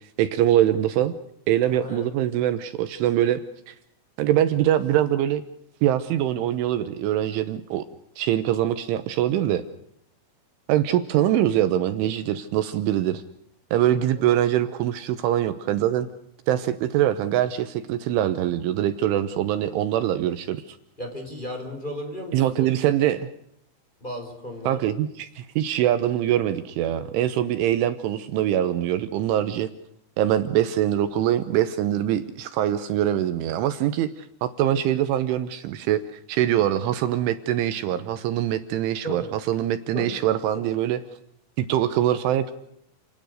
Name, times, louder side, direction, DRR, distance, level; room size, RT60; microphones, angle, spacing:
voice 1, 0.2-1.1 1.5-3.4 3.7-3.8 4.2-5.4 5.8-7.9 8.2-9.7 10.7-13.2 13.7-16.1 16.5-20.8 22.3-23.3 24.7-29.7 30.2-41.0 41.6-42.5, right 11 dB, 75° right, 11 dB, 3.3 m, -23 dB
voice 2, 1.7-2.1 14.2-14.3 21.0-22.7 24.0-24.9 39.0-39.2 39.9-40.2, equal, 10° left, 3 dB, 4.1 m, -35 dB
29.5 x 19.5 x 6.5 m, 0.73 s
omnidirectional pair, 6.0 m